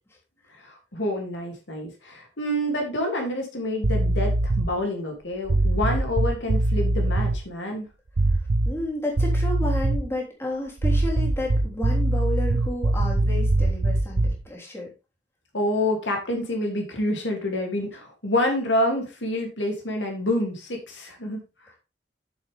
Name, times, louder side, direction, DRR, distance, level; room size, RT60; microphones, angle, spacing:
voice 1, 0.6-7.9 15.5-21.4, left 1 dB, 80° left, 2 dB, 3.0 m, -27 dB
sound 1, 3.8-4.8 5.5-7.4 8.2-8.9 9.2-10.1 10.8-14.5, right 2 dB, 65° right, 0.7 m, -22 dB
voice 2, 8.6-14.9, left 1 dB, 15° left, -3 dB, 3.4 m, -31 dB
9.4 x 7.2 x 3.6 m, 0.29 s
head